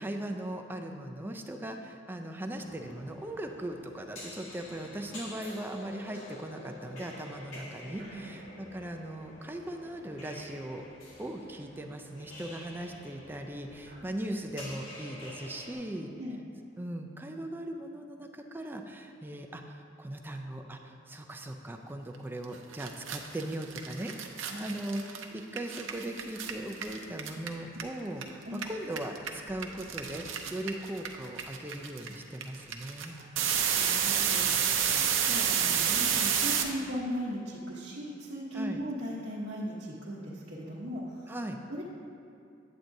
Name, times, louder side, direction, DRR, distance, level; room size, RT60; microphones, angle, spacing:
voice 1, 0.0-10.9 11.2-16.1 16.8-24.1 24.6-33.2 38.5-38.8 41.3-41.6, right 1 dB, 10° right, 4 dB, 0.4 m, -39 dB
sound 1, 2.5-15.7, left 1 dB, 85° left, 1.8 m, -48 dB
voice 2, 8.0-8.3 13.9-14.1 16.2-16.4 24.4-24.8 28.5-28.7 33.2-33.3 33.7-41.3 41.7-41.8, equal, 60° right, -7 dB, 0.9 m, -38 dB
sound 2, 22.4-22.5 22.7-28.2 28.5-36.6, right 8 dB, 80° right, 0.6 m, -29 dB
8.9 x 8.2 x 2.7 m, 2.8 s
head